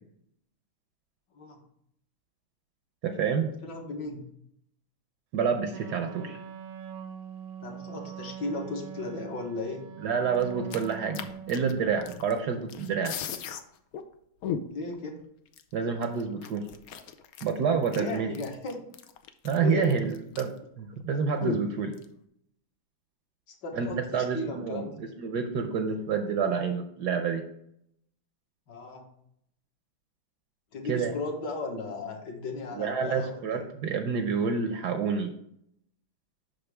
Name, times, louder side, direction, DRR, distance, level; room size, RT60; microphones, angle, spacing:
voice 1, 3.0-3.5 5.3-6.4 10.0-13.1 15.7-16.6 17.4-18.3 19.4-20.5 20.8-21.9 23.7-24.8 25.2-27.4 30.9-31.1 32.7-35.3, right 6 dB, 65° right, 5 dB, 1.1 m, -28 dB
voice 2, 3.6-4.2 7.6-9.8 14.7-15.2 17.9-18.8 19.6-20.0 23.5-25.0 28.7-29.1 30.7-33.6, left 3 dB, 60° left, 2 dB, 1.9 m, -36 dB
Wind instrument woodwind instrument, 5.7-11.8, right 8 dB, 80° right, 1.6 m, -42 dB
sound 1, 10.4-12.4 12.7-13.6 13.9-14.0 14.4-14.9 15.5-15.6 16.0-20.6 20.9-21.0 21.4-22.1, left 7 dB, 80° left, 0.8 m, -37 dB
7.9 x 5.8 x 3.4 m, 0.72 s
omnidirectional pair, 2.2 m